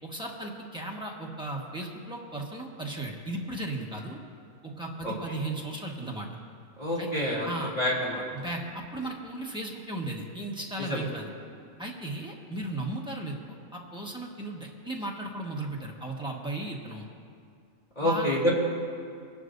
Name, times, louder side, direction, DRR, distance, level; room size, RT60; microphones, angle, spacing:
voice 1, 0.0-4.2 4.6-6.3 7.0-7.1 7.4-7.7 8.3-11.3 11.8-13.4 13.7-17.1 18.0-18.3, right 2 dB, 5° right, -2 dB, 1.3 m, -36 dB
voice 2, 6.8-7.5 7.8-8.2 10.9-11.0 17.9-18.5, left 1 dB, 30° left, -5 dB, 3.2 m, -27 dB
25.0 x 11.0 x 2.6 m, 2.3 s
omnidirectional pair, 1.5 m